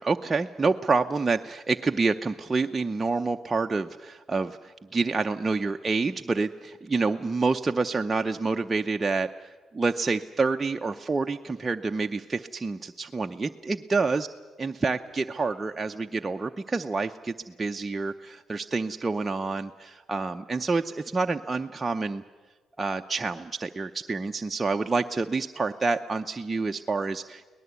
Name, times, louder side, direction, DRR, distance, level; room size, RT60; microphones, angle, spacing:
voice 1, 0.0-9.3 9.7-14.3 14.6-22.2 22.8-27.5, right 3 dB, 25° right, 5 dB, 0.6 m, -28 dB
23.5 x 18.5 x 8.2 m, 1.3 s
cardioid pair, 90°, 0 cm